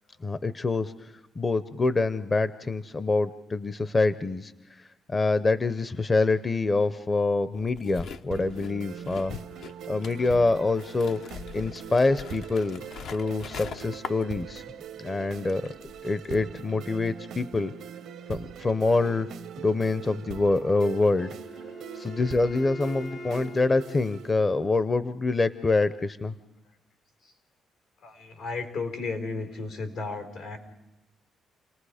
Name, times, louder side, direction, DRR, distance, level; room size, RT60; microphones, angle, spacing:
voice 1, 0.2-1.1 1.4-4.5 5.1-9.3 9.9-11.2 11.5-12.8 13.1-14.6 15.0-15.7 16.0-17.7 18.3-19.3 19.6-21.3 21.9-26.3, left 3 dB, 30° left, 13 dB, 0.6 m, -25 dB
sound 1, 7.5-14.8 15.1-16.4, left 6 dB, 75° left, 0.7 m, -43 dB
sound 2, 8.3-24.3, right 9 dB, 80° right, 0.7 m, -42 dB
Wind instrument woodwind instrument, 20.9-25.0, equal, 45° left, 1.0 m, -43 dB
voice 2, 28.0-30.6, left 3 dB, 90° left, 4 dB, 4.1 m, -34 dB
29.5 x 19.0 x 4.9 m, 0.96 s
cardioid pair, 90°, 0 cm